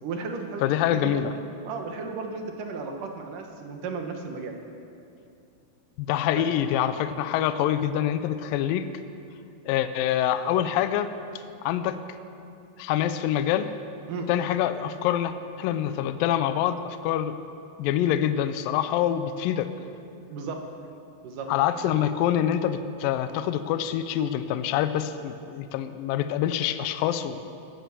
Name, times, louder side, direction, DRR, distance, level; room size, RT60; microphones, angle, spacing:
voice 1, 0.0-0.6 0.9-1.2 1.6-4.6 6.4-6.5 14.1-14.3 20.3-20.6 21.2-21.5, right 4 dB, 65° right, 3 dB, 2.3 m, -34 dB
voice 2, 0.6-1.3 6.0-8.9 9.7-11.1 11.6-12.0 12.8-13.7 14.3-17.4 17.8-19.7 21.5-27.5, left 10 dB, 90° left, 11 dB, 2.0 m, -25 dB
18.5 x 10.5 x 6.8 m, 2.6 s
omnidirectional pair, 4.8 m